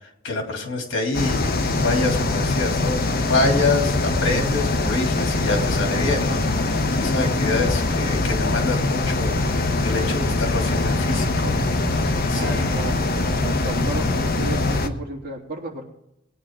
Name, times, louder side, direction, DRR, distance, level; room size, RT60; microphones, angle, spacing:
voice 1, 0.2-11.5 12.3-12.8, left 3 dB, 65° left, 1 dB, 3.4 m, -26 dB
sound 1, 1.1-14.9, left 2 dB, 50° left, 1.2 m, -22 dB
voice 2, 12.4-13.1 13.4-15.9, right 2 dB, 50° right, -2 dB, 3.4 m, -33 dB
20.5 x 9.9 x 3.8 m, 0.80 s
head